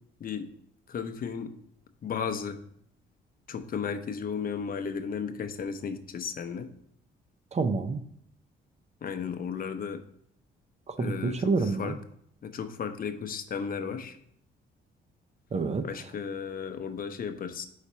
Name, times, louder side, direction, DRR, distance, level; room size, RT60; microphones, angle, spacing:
voice 1, 0.9-1.5 2.0-2.6 3.5-6.7 9.0-10.0 11.0-11.4 11.8-11.9 12.4-14.1 15.8-17.6, left 6 dB, 45° left, 8 dB, 0.7 m, -34 dB
voice 2, 7.5-8.0 10.9-12.0 15.5-16.1, right 4 dB, 35° right, 9 dB, 0.6 m, -28 dB
4.9 x 4.2 x 5.3 m, 0.68 s
cardioid pair, 90°, 20 cm